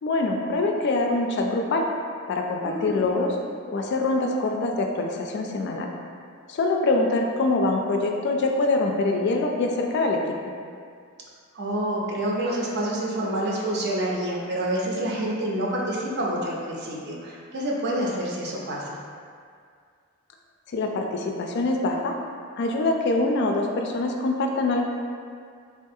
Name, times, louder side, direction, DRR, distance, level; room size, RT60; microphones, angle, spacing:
voice 1, 0.0-1.9 2.3-3.4 3.7-5.9 6.5-10.5 20.7-22.2 22.6-24.9, left 2 dB, 55° left, 2 dB, 0.3 m, -24 dB
voice 2, 2.6-3.1 11.5-19.0, right 1 dB, 50° right, -3 dB, 0.5 m, -28 dB
3.3 x 2.3 x 2.6 m, 2.2 s
head